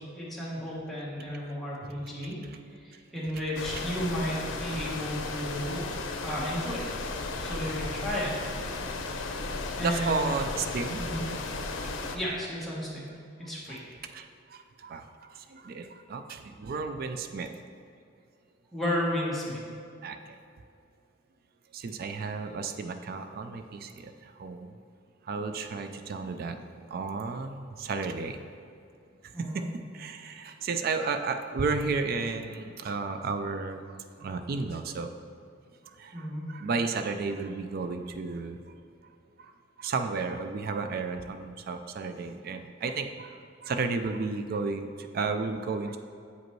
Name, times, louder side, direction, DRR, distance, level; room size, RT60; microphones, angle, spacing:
voice 1, 0.0-2.4 2.7-5.9 6.2-6.9 7.4-8.4 9.8-10.3 11.0-11.2 12.1-13.1 13.4-13.9 18.7-19.6 29.3-29.7 36.1-36.5, equal, ahead, -7 dB, 1.3 m, -33 dB
sound 1, 3.5-12.2, left 3 dB, 90° left, 0.6 m, -35 dB
voice 2, 9.8-11.0 13.7-13.8 14.0-17.5 20.0-20.4 21.7-24.8 25.2-28.4 29.2-35.3 35.8-38.6 39.4-39.5 39.8-46.0, right 4 dB, 50° right, 8 dB, 0.3 m, -33 dB
8.0 x 5.0 x 3.1 m, 2.4 s
head